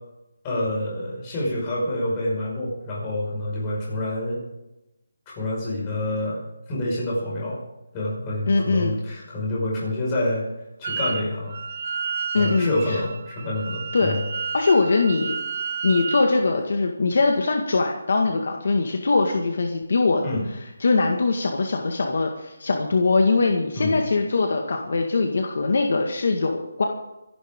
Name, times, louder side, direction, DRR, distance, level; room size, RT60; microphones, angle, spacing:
voice 1, 0.4-4.4 5.3-6.4 6.7-7.6 7.9-10.5 10.8-11.6 12.3-14.2 20.2-20.4 23.7-24.0, left 1 dB, 15° left, -5 dB, 5.4 m, -27 dB
voice 2, 8.5-8.9 12.3-13.0 13.9-14.2 14.5-15.4 15.8-20.2 20.8-26.8, left 3 dB, 50° left, 3 dB, 1.8 m, -22 dB
Wind instrument woodwind instrument, 10.8-11.2 11.5-16.3, right 6 dB, 30° right, 0.8 m, -31 dB
26.0 x 11.5 x 3.8 m, 0.94 s
hypercardioid pair, 175°, 0 cm